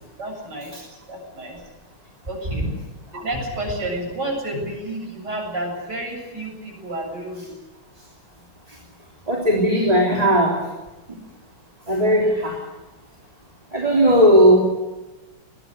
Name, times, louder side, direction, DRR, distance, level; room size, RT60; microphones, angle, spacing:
voice 1, 0.2-1.6 2.3-2.7 3.1-7.5, right 1 dB, 55° right, 1 dB, 8.7 m, -31 dB
voice 2, 9.3-10.6 11.9-12.6 13.7-14.6, equal, 15° right, -1 dB, 3.4 m, -16 dB
21.0 x 20.0 x 8.4 m, 1.1 s
omnidirectional pair, 2.3 m